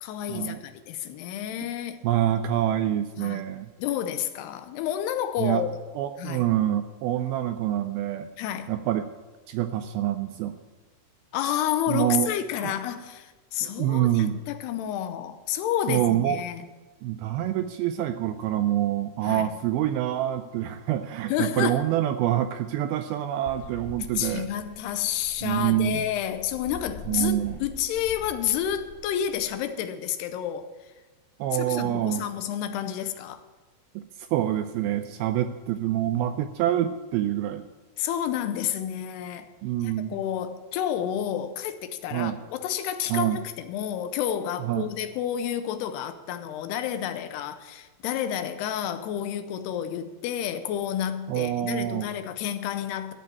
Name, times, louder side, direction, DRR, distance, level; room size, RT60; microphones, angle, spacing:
voice 1, 0.0-2.0 3.2-3.4 3.8-5.7 6.2-6.5 8.4-8.7 11.3-16.7 19.3-19.5 21.3-21.8 24.2-30.7 31.5-33.4 38.0-39.5 39.8-53.1, left 10 dB, 85° left, 10 dB, 2.7 m, -30 dB
voice 2, 2.0-3.7 5.4-5.7 6.0-8.3 8.7-9.1 9.5-10.6 11.9-12.3 12.6-12.8 13.6-14.4 15.9-16.4 17.0-24.5 25.4-26.1 27.1-27.6 31.4-32.2 34.0-37.6 39.6-40.2 42.1-42.4 43.1-43.4 44.6-44.9 51.3-52.1, right 12 dB, 85° right, 8 dB, 2.2 m, -26 dB
sound 1, 23.5-29.5, left 2 dB, 65° left, 2.2 m, -44 dB
13.5 x 5.4 x 8.4 m, 1.2 s
omnidirectional pair, 4.8 m